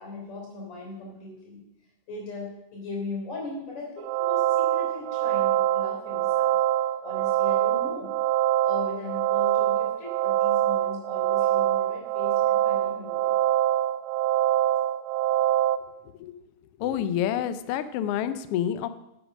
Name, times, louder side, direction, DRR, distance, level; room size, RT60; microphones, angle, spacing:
voice 1, 0.0-1.6 2.1-6.5 7.0-8.1 8.6-13.5, left 3 dB, 65° left, -1 dB, 5.0 m, -39 dB
sound 1, 4.0-15.8, right 12 dB, 85° right, 1.9 m, -24 dB
voice 2, 16.8-18.9, left 10 dB, 85° left, 12 dB, 1.3 m, -28 dB
8.8 x 8.1 x 6.2 m, 0.85 s
omnidirectional pair, 3.3 m